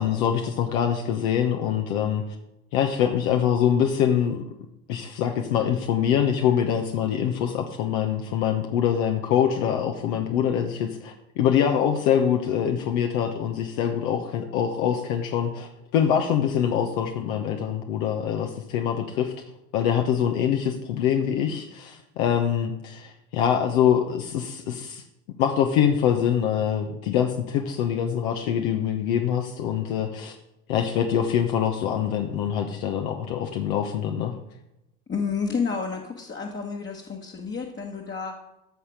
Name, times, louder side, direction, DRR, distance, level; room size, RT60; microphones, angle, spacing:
voice 1, 0.0-2.2 2.7-4.4 4.9-19.3 19.7-25.0 25.4-30.3 30.7-34.3, left 9 dB, 60° left, 4 dB, 1.1 m, -24 dB
voice 2, 35.1-38.4, left 5 dB, 25° left, -1 dB, 1.4 m, -30 dB
14.0 x 5.7 x 5.0 m, 0.93 s
figure-of-eight pair, 65°, 46 cm